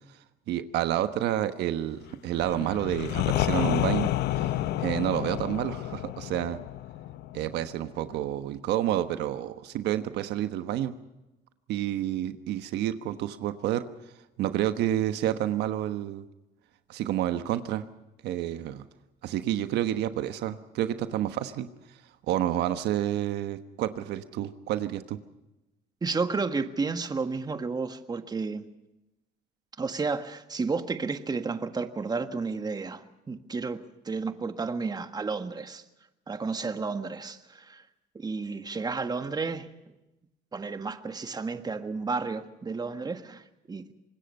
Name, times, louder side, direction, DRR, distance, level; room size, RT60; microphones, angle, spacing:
voice 1, 0.5-4.5 4.8-6.6 7.3-10.9 11.7-13.8 14.4-16.3 16.9-17.8 18.2-18.8 19.2-21.7 22.3-25.2, right 12 dB, 80° right, 1.3 m, -29 dB
sound 1, 2.3-8.1, left 14 dB, 75° left, 0.7 m, -30 dB
voice 2, 26.0-28.7 29.8-35.8 36.3-37.8 38.1-39.7 40.5-43.4 43.7-43.8, right 4 dB, 25° right, 1.5 m, -32 dB
25.0 x 20.5 x 5.5 m
cardioid pair, 110°, 17 cm